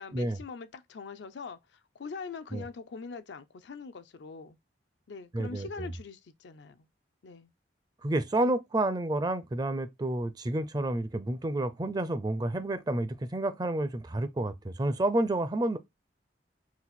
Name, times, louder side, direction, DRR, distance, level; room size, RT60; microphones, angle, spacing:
voice 1, 0.0-4.6 5.1-6.9 7.2-7.5, left 4 dB, 70° left, 0.5 m, -43 dB
voice 2, 5.3-5.9 8.0-15.8, right 1 dB, 20° right, 0.4 m, -30 dB
4.0 x 2.5 x 4.1 m
head